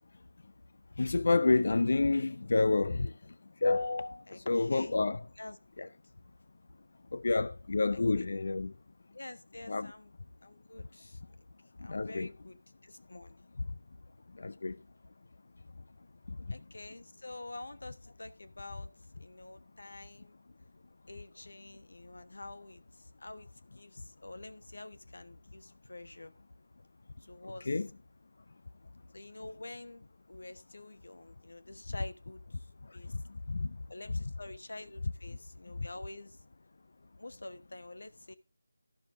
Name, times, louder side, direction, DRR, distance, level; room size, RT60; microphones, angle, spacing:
voice 1, 1.0-3.1 3.6-5.2 7.1-8.7 9.7-9.9 11.9-12.3 14.4-14.8 16.3-16.4 27.7-27.9 33.1-33.2 33.5-33.8, left 3 dB, 50° left, 0.5 m, -29 dB
voice 2, 4.3-5.0 5.4-5.9 7.9-8.3 9.1-10.1 10.4-11.2 11.8-13.4 16.5-18.9 19.2-20.4 21.1-26.3 27.2-27.9 29.1-33.1 33.9-36.4 37.2-38.3, left 2 dB, 75° left, 1.1 m, -48 dB
12.5 x 12.0 x 2.6 m
figure-of-eight pair, 175°, 0 cm